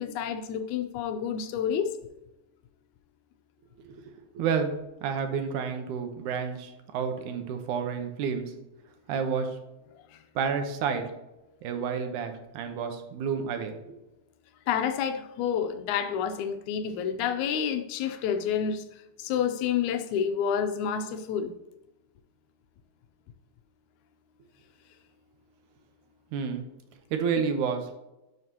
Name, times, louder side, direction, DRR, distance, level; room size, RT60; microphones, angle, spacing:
voice 1, 0.0-1.9 10.1-10.2 14.7-21.5, left 8 dB, 80° left, 8 dB, 2.0 m, -29 dB
voice 2, 4.3-4.7 5.0-8.5 9.1-9.5 10.4-11.1 11.6-14.0 26.3-26.7 27.1-27.9, right 6 dB, 85° right, 6 dB, 2.4 m, -30 dB
11.0 x 5.8 x 2.8 m, 0.97 s
omnidirectional pair, 3.5 m